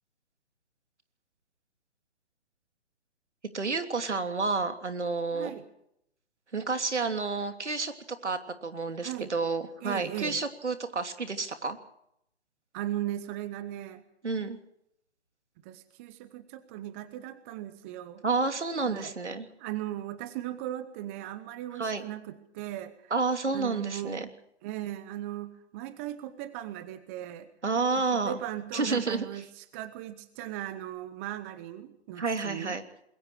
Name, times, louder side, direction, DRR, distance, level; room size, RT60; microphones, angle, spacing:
voice 1, 3.5-5.5 6.5-7.9 8.2-11.8 14.2-14.6 18.2-19.5 21.7-22.0 23.1-24.3 27.6-28.4 28.7-29.2 32.2-32.8, right 4 dB, 80° right, 7 dB, 3.1 m, -30 dB
voice 2, 5.3-5.7 9.0-9.3 9.8-10.4 12.7-14.0 15.6-18.2 18.8-19.1 19.6-23.1 23.5-24.3 24.6-27.5 28.0-32.8, right 13 dB, 10° right, 14 dB, 0.7 m, -38 dB
28.0 x 21.5 x 4.8 m, 0.77 s
figure-of-eight pair, 145°, 34 cm